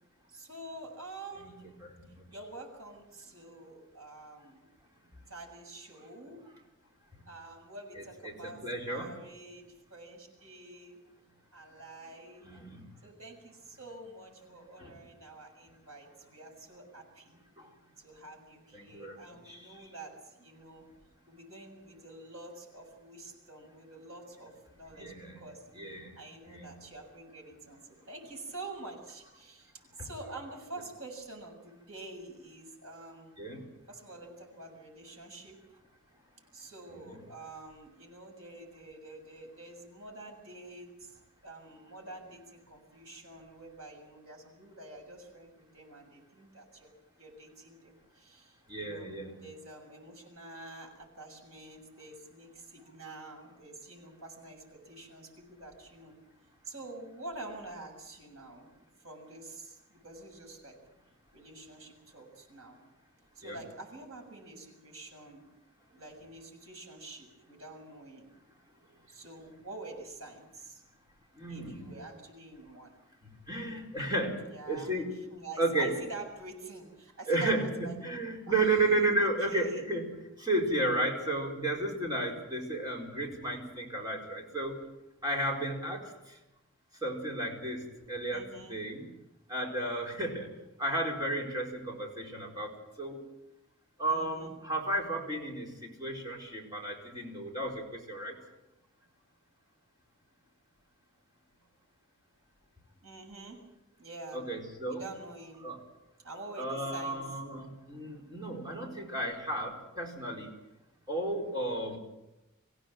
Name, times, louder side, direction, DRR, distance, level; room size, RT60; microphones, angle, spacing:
voice 1, 0.3-1.6 2.3-4.7 5.3-6.4 7.2-11.0 11.5-12.5 13.0-17.4 18.0-20.9 21.3-33.3 33.9-35.8 36.5-46.9 47.2-49.1 49.4-56.1 56.6-58.7 59.0-60.8 61.3-62.8 63.3-65.4 65.9-68.3 69.1-70.8 71.4-72.9 74.4-78.0 78.4-78.7 79.4-79.9 88.3-88.8 94.0-94.5 98.2-98.4 103.0-103.6 104.0-104.4 104.9-105.7 106.2-107.4, right 2 dB, 75° right, 2 dB, 6.8 m, -47 dB
voice 2, 8.2-9.1 12.4-12.8 14.8-14.9 17.6-17.7 18.7-19.2 19.5-19.6 24.9-25.4 25.7-26.1 26.4-26.7 33.4-33.6 48.7-49.4 63.4-63.6 71.4-71.9 73.5-75.2 75.6-76.0 77.3-80.0 80.4-84.8 85.2-86.1 87.0-89.1 89.5-90.5 90.8-92.7 93.0-93.2 94.0-98.3 104.3-105.0 105.6-105.8 106.6-110.5 111.1-112.0, right 2 dB, 20° right, 0 dB, 4.6 m, -33 dB
25.0 x 16.0 x 7.8 m, 0.95 s
head